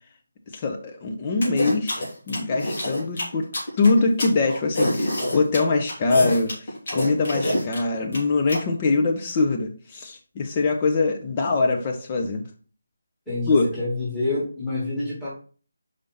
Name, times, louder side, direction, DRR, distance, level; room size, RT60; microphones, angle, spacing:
voice 1, 0.5-3.5 3.8-6.5 6.9-12.4 13.5-13.6, left 3 dB, 25° left, 4 dB, 1.1 m, -23 dB
sound 1, 1.4-8.6, left 1 dB, 50° left, 3.1 m, -26 dB
voice 2, 13.3-15.3, left 2 dB, 5° left, -10 dB, 3.6 m, -27 dB
5.4 x 5.1 x 4.3 m, 0.40 s
figure-of-eight pair, 160°, 0 cm